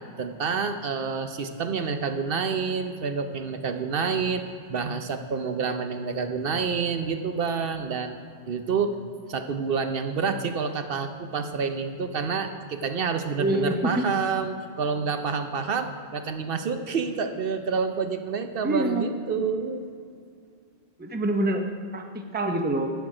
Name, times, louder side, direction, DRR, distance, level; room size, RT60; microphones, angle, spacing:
voice 1, 0.2-4.4 4.7-8.2 8.5-9.0 9.3-19.8, right 5 dB, 65° right, 8 dB, 0.9 m, -28 dB
voice 2, 13.4-14.0 18.6-19.1 21.0-21.6 21.9-22.9, right 1 dB, 10° right, 4 dB, 0.6 m, -26 dB
11.5 x 8.3 x 4.9 m, 2.3 s
omnidirectional pair, 1.1 m